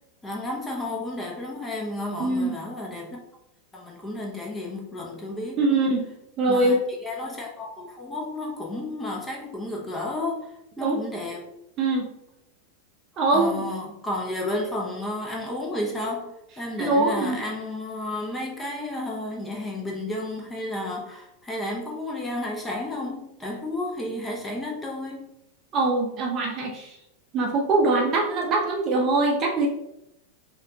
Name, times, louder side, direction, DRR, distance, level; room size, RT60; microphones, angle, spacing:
voice 1, 0.2-3.2 3.7-5.6 6.5-11.5 13.3-25.3, left 1 dB, 15° left, -1 dB, 0.9 m, -32 dB
voice 2, 2.2-2.5 5.6-6.0 6.4-6.8 10.8-11.0 11.8-12.1 13.2-13.5 16.8-17.4 25.7-26.9 27.3-29.7, right 2 dB, 30° right, 0 dB, 0.7 m, -22 dB
4.9 x 2.5 x 2.8 m, 0.83 s
figure-of-eight pair, 90°, 0 cm